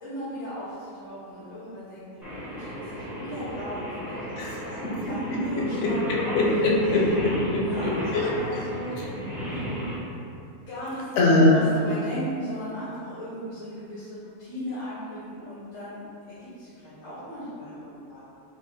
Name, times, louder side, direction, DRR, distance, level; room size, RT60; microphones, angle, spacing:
voice 1, 0.0-6.3 7.6-9.1 10.4-16.0 16.4-18.2, equal, 85° left, -13 dB, 1.6 m, -37 dB
Singing, 2.2-9.9, equal, ahead, 0.4 m, -34 dB
voice 2, 4.8-8.0 8.2-8.3 9.0-9.1 11.2-11.6, left 2 dB, 65° left, -3 dB, 0.9 m, -23 dB
5.3 x 2.2 x 2.6 m, 2.6 s
omnidirectional pair, 1.5 m